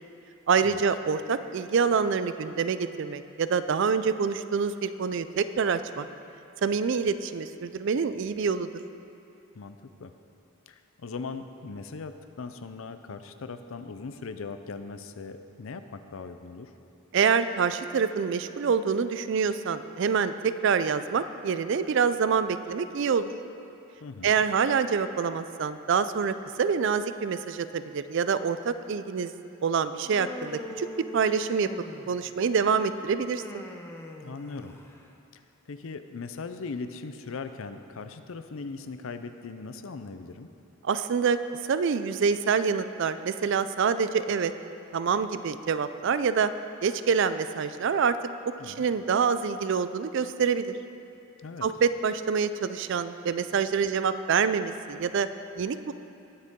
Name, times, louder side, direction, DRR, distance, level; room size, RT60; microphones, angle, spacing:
voice 1, 0.5-6.1 6.6-8.7 17.1-23.3 24.2-29.3 29.6-31.7 32.1-33.6 40.8-41.4 41.7-44.5 44.9-46.5 46.8-48.2 48.6-50.8 51.6-55.3 55.6-55.9, right 6 dB, 55° right, 12 dB, 0.4 m, -26 dB
voice 2, 9.6-10.1 10.7-16.7 24.0-24.4 34.2-34.8 35.3-35.4 35.7-40.5 48.6-48.9 51.4-51.7, left 4 dB, 70° left, 9 dB, 0.5 m, -39 dB
Human voice, 30.0-32.3 33.2-35.0, equal, 10° left, 0.6 m, -41 dB
19.5 x 6.6 x 3.7 m, 2.7 s
head